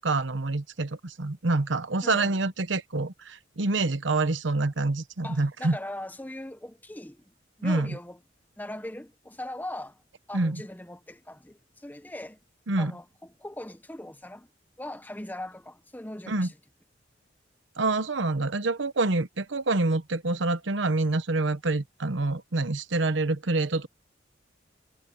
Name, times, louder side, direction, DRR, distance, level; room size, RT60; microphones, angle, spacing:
voice 1, 0.0-5.8 7.6-8.0 10.3-10.6 12.7-12.9 16.3-16.5 17.8-23.9, right 2 dB, 75° right, 1.0 m, -27 dB
voice 2, 2.0-2.4 5.2-8.2 8.6-10.0 10.3-12.4 12.8-14.5 14.8-16.6, left 1 dB, 10° left, 1.2 m, -40 dB
head